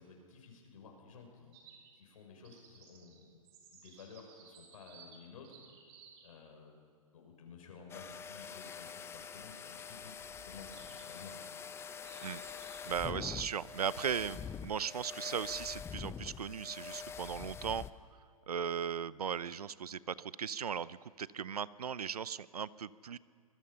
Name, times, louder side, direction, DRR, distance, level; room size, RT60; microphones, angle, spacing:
voice 1, 0.0-1.5 1.9-3.4 3.7-5.6 6.2-6.8 7.1-11.4, left 5 dB, 65° left, 2 dB, 6.4 m, -54 dB
sound 1, 1.5-2.1 2.4-6.4 9.9-13.0, right 6 dB, 45° right, 4.8 m, -59 dB
sound 2, 7.9-17.9, left 7 dB, 15° left, 0.7 m, -45 dB
voice 2, 12.9-17.8 18.5-23.2, right 7 dB, 85° right, 19 dB, 0.7 m, -37 dB
26.5 x 20.5 x 5.7 m, 2.2 s
hypercardioid pair, 125°, 19 cm